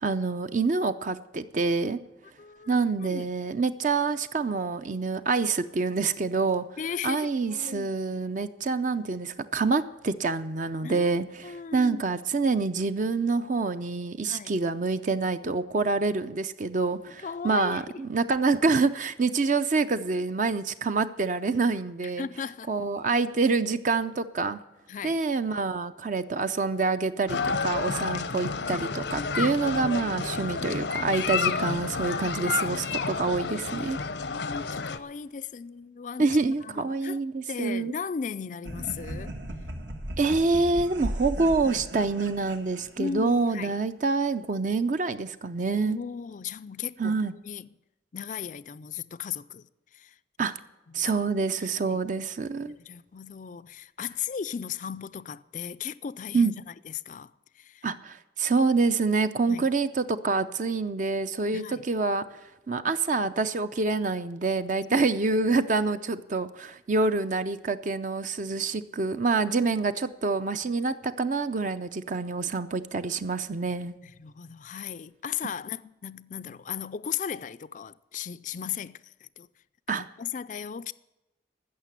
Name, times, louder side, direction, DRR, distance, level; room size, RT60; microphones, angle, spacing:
voice 1, 0.0-2.0 2.7-6.7 7.0-22.3 22.7-24.6 25.0-34.0 36.2-37.9 40.2-46.0 47.0-47.3 50.4-50.5 50.9-52.7 56.3-56.5 57.8-62.2 62.7-73.9 79.9-80.1, right 4 dB, 45° right, 0.5 m, -27 dB
voice 2, 2.4-2.7 3.0-3.3 6.8-7.9 10.8-11.1 11.4-12.0 14.2-14.6 17.2-17.8 22.0-22.7 24.9-25.2 28.1-28.2 34.2-37.2 37.5-39.3 43.0-43.8 45.7-47.7 48.1-49.7 49.9-50.1 50.9-51.0 51.6-52.0 52.8-56.5 56.8-57.3 57.6-57.9 59.5-59.7 61.5-61.9 64.9-65.1 74.0-79.5 79.9-80.9, left 7 dB, 45° left, 0.4 m, -37 dB
sound 1, 27.3-35.0, left 5 dB, 80° left, 0.7 m, -30 dB
sound 2, 38.6-43.4, right 1 dB, 80° right, 1.8 m, -37 dB
15.0 x 6.6 x 9.7 m
head